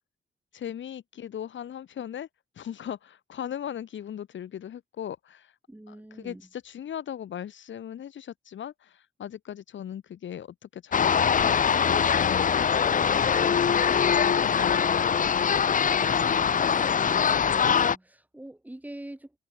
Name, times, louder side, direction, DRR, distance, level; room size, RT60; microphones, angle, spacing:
voice 1, 0.5-2.3 2.5-5.5 5.9-13.8 14.2-16.4, left 9 dB, 70° left, 1.4 m, -39 dB
voice 2, 5.7-6.4 17.4-19.4, right 1 dB, 10° right, 4.3 m, -44 dB
sound 1, 10.9-18.0, left 7 dB, 40° left, 0.8 m, -23 dB
wide cardioid pair, 130°, 20 cm